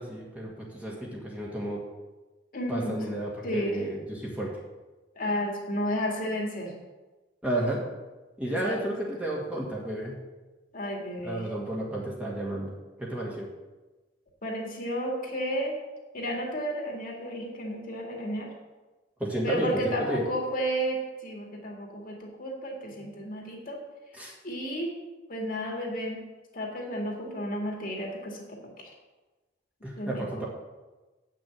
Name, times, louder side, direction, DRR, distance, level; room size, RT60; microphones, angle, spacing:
voice 1, 0.0-1.8 2.7-4.5 7.4-7.8 8.4-10.2 11.2-12.7 13.0-13.4 19.2-20.2 22.9-23.0 24.1-24.3 29.8-30.5, right 1 dB, 5° right, -4 dB, 1.8 m, -32 dB
voice 2, 2.5-3.0 3.4-3.8 5.2-6.8 8.5-9.0 10.7-11.4 14.4-15.8 16.1-18.5 19.4-23.8 24.4-24.9 25.3-26.2 26.5-28.9 30.0-30.2, equal, 45° left, 0 dB, 2.1 m, -32 dB
8.8 x 6.2 x 7.6 m, 1.2 s
head